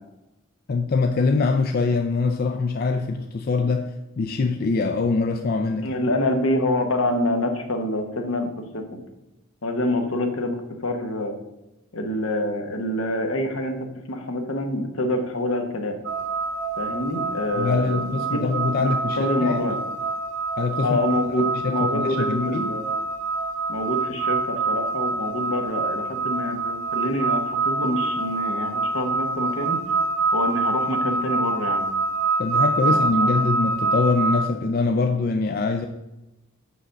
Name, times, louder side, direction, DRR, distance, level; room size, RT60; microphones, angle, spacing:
voice 1, 0.7-3.9 4.2-6.0 17.6-19.6 20.6-21.0 21.4-22.7 32.4-35.9, left 4 dB, 45° left, 5 dB, 0.4 m, -23 dB
voice 2, 5.8-9.0 9.6-11.4 11.9-16.0 16.8-18.5 18.8-19.8 20.8-22.8 23.7-29.8 30.3-31.8 32.9-33.3, left 1 dB, 75° left, 5 dB, 1.0 m, -26 dB
sound 1, 16.0-34.4, right 3 dB, 80° right, 2.0 m, -26 dB
5.0 x 5.0 x 6.3 m, 0.96 s
head